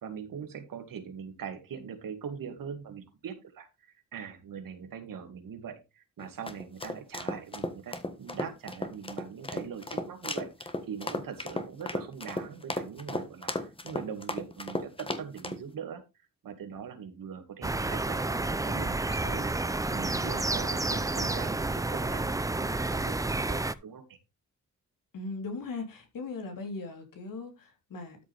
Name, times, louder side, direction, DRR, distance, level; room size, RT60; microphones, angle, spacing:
voice 1, 0.0-16.0 16.4-24.2, right 7 dB, 90° right, 2.3 m, -42 dB
sound 1, 6.2-15.6, left 2 dB, 15° left, 1.4 m, -35 dB
sound 2, 17.6-23.7, right 2 dB, 10° right, 0.5 m, -30 dB
voice 2, 25.1-28.2, left 3 dB, 80° left, 3.7 m, -38 dB
13.0 x 7.0 x 3.5 m
wide cardioid pair, 130°, 33 cm